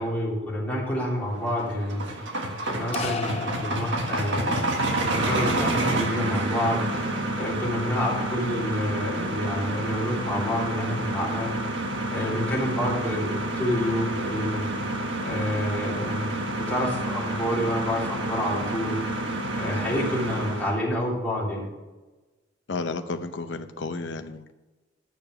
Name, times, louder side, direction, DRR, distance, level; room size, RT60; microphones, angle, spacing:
voice 1, 0.0-2.3 2.6-11.5 12.1-14.7 15.2-19.0 19.5-21.7, left 1 dB, 10° left, -6 dB, 3.4 m, -28 dB
sound 1, 1.4-20.8, right 1 dB, 75° right, 1.5 m, -29 dB
sound 2, 2.9-4.6, left 6 dB, 35° left, 0.4 m, -35 dB
voice 2, 22.7-24.5, left 3 dB, 70° left, 8 dB, 0.7 m, -32 dB
11.5 x 7.0 x 5.7 m, 1.2 s
head